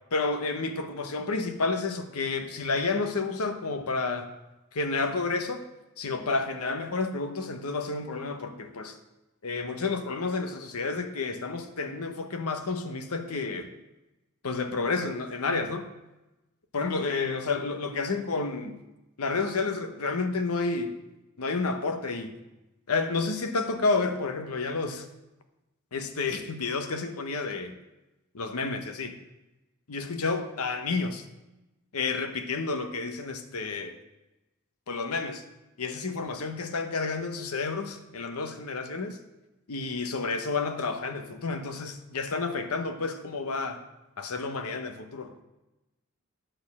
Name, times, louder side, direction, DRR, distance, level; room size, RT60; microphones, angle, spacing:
voice 1, 0.1-4.3 4.7-5.7 6.0-8.9 9.4-13.7 14.4-15.9 16.7-18.8 19.2-21.0 21.4-22.4 22.9-25.0 25.9-27.7 28.3-29.2 29.9-31.2 31.9-33.9 34.9-35.4 35.8-39.2 39.7-43.8 44.2-45.4, left 3 dB, 90° left, 7 dB, 0.9 m, -30 dB
10.0 x 4.4 x 7.2 m, 1.0 s
head